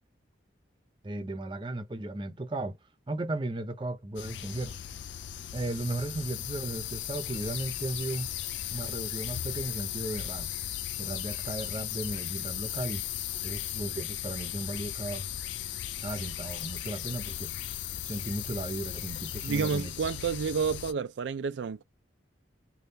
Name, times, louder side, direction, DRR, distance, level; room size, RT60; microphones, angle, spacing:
voice 1, 1.0-2.8 3.1-4.8 5.5-8.3 8.7-10.5 11.0-13.0 13.4-15.3 16.0-17.5 18.1-19.9, right 2 dB, 25° right, 0.6 m, -35 dB
sound 1, 4.2-20.9, left 11 dB, 80° left, 0.4 m, -37 dB
voice 2, 19.4-21.8, right 6 dB, 80° right, 0.4 m, -30 dB
3.5 x 2.3 x 2.7 m
head